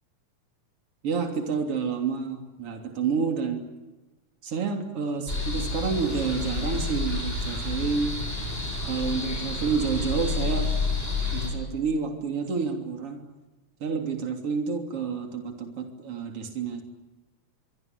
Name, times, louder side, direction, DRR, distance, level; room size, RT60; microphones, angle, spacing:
voice 1, 1.0-3.7 4.4-8.2 8.8-10.7 11.3-13.2 13.8-16.8, right 5 dB, 50° right, 3 dB, 4.1 m, -29 dB
sound 1, 5.3-11.5, left 3 dB, 20° left, 8.0 m, -29 dB
25.0 x 24.5 x 8.4 m, 1.2 s
omnidirectional pair, 3.3 m